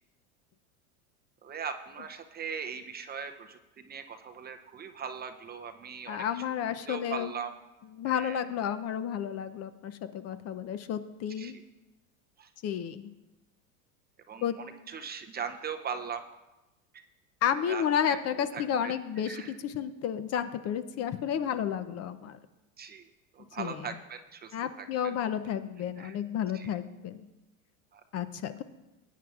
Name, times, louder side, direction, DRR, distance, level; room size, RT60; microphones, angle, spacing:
voice 1, 1.4-7.5 8.0-8.4 11.4-11.5 12.4-12.5 14.3-16.2 16.9-17.0 17.7-18.2 18.5-18.9 19.3-19.6 22.8-23.0 23.3-24.9 26.0-26.2 26.5-26.7 27.9-28.0, right 6 dB, 20° right, 6 dB, 0.6 m, -40 dB
voice 2, 6.1-7.3 7.9-11.6 12.6-13.1 14.4-14.6 17.4-22.4 23.6-23.9 24.5-27.3 28.1-28.6, left 9 dB, 35° left, 11 dB, 0.6 m, -32 dB
19.0 x 8.9 x 2.4 m, 1.0 s
supercardioid pair, 105°, 43 cm